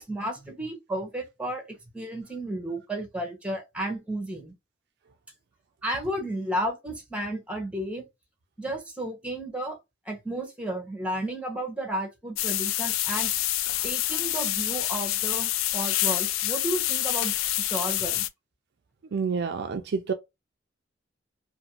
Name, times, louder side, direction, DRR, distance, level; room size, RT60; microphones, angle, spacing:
voice 1, 0.0-4.5 5.8-8.1 8.6-9.8 10.0-13.3 13.8-18.3, right 1 dB, 5° right, 0.8 m, -33 dB
sound 1, 12.4-18.3, left 14 dB, 80° left, 0.3 m, -27 dB
voice 2, 19.1-20.1, right 5 dB, 55° right, 0.4 m, -28 dB
2.6 x 2.5 x 2.8 m
head